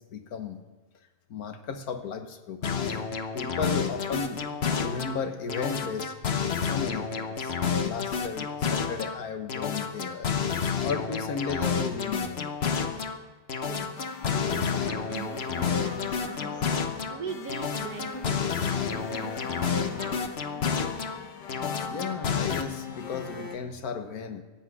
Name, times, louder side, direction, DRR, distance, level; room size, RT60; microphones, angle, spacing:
voice 1, 0.1-0.6 1.3-3.0 3.3-4.4 4.8-6.1 6.7-10.3 10.8-12.6 21.8-24.4, left 5 dB, 65° left, 8 dB, 1.6 m, -35 dB
sound 1, 2.6-5.2 5.5-9.2 9.5-13.2 13.5-17.2 17.5-21.2 21.5-22.6, left 6 dB, 45° left, 1.0 m, -30 dB
voice 2, 13.7-14.1 14.3-19.5 19.7-20.2, right 6 dB, 65° right, 5 dB, 1.4 m, -41 dB
sound 2, 14.0-23.6, left 6 dB, 90° left, 1.8 m, -41 dB
15.0 x 8.2 x 9.5 m, 1.2 s
omnidirectional pair, 1.8 m